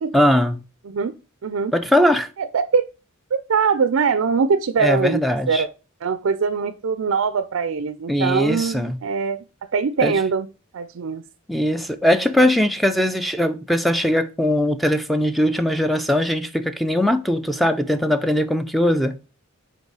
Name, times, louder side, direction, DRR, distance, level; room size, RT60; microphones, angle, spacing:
voice 1, 0.1-0.6 1.7-2.3 4.8-5.6 8.1-9.0 10.0-10.1 11.5-19.1, left 1 dB, ahead, 0.4 m, -20 dB
voice 2, 1.4-1.7 2.4-2.9 3.5-5.7 6.0-9.4 9.7-10.5 10.7-11.2, right 5 dB, 70° right, 0.4 m, -22 dB
5.4 x 4.3 x 4.7 m
head